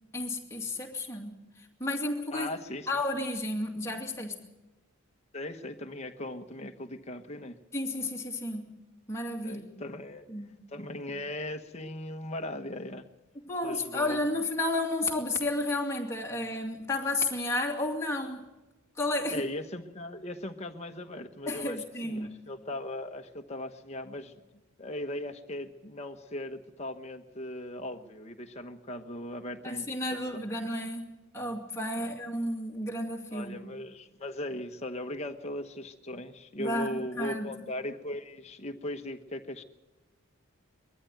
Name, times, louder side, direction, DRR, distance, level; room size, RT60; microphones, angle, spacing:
voice 1, 0.1-2.5 2.9-4.4 7.7-8.7 9.1-9.7 10.3-10.5 13.5-18.5 19.0-19.5 21.5-22.3 29.6-33.6 36.6-37.5, left 2 dB, 15° left, 0 dB, 2.4 m, -32 dB
voice 2, 2.3-2.9 5.3-7.6 9.4-10.2 10.7-13.1 13.6-14.2 15.3-15.4 19.3-24.4 24.8-30.5 31.9-32.1 33.3-39.6, left 1 dB, 30° left, 5 dB, 1.2 m, -38 dB
22.0 x 14.0 x 9.2 m, 1.1 s
head